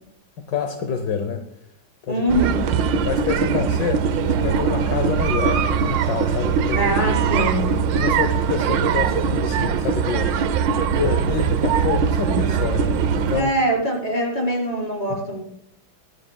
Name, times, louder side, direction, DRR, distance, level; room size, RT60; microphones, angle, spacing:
voice 1, 0.5-1.4 2.1-2.2 3.1-7.0 7.9-10.3 10.9-13.5 15.1-15.2, left 6 dB, 65° left, 7 dB, 1.5 m, -27 dB
voice 2, 2.1-2.6 6.7-7.6 13.3-15.4, right 1 dB, 20° left, -2 dB, 4.8 m, -23 dB
sound 1, 2.3-13.4, right 6 dB, 75° right, 1.4 m, -21 dB
23.5 x 9.9 x 2.3 m, 0.73 s
omnidirectional pair, 2.1 m